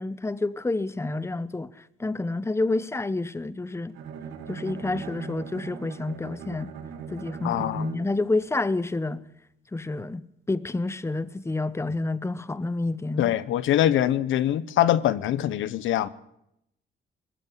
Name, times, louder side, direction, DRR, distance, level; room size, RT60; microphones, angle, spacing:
voice 1, 0.0-1.7 2.0-4.0 4.5-6.7 7.1-9.2 9.7-13.4, left 2 dB, 15° left, 1.0 m, -29 dB
Bowed string instrument, 3.9-8.3, right 6 dB, 90° right, 2.4 m, -39 dB
voice 2, 7.4-7.9 13.2-16.1, left 12 dB, 80° left, 1.0 m, -23 dB
19.5 x 14.5 x 9.8 m
cardioid pair, 90°, 20 cm